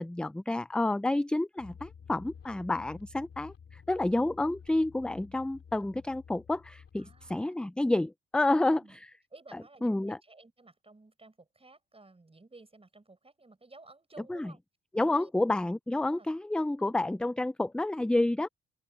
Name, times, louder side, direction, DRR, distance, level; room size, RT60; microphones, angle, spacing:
voice 1, 0.0-9.1 9.8-10.2 14.3-14.5 14.9-18.5, left 2 dB, 5° left, 0.3 m, -29 dB
sound 1, 1.6-7.4, left 7 dB, 45° left, 2.8 m, -52 dB
voice 2, 7.0-7.4 8.7-9.0 9.3-14.6 15.1-15.3 16.1-16.3 16.8-17.0, right 3 dB, 20° right, 7.4 m, -55 dB
open air
cardioid pair, 90°, 30 cm